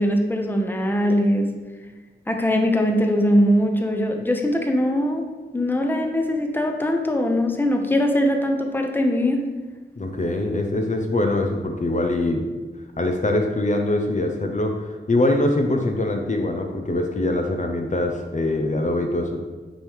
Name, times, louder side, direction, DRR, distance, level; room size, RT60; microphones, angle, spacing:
voice 1, 0.0-1.5 2.3-5.3 5.5-9.4, equal, 10° left, 3 dB, 0.8 m, -21 dB
voice 2, 10.0-12.4 13.0-19.4, left 1 dB, 40° left, 3 dB, 0.7 m, -23 dB
8.7 x 3.2 x 3.5 m, 1.3 s
cardioid pair, 40°, 19 cm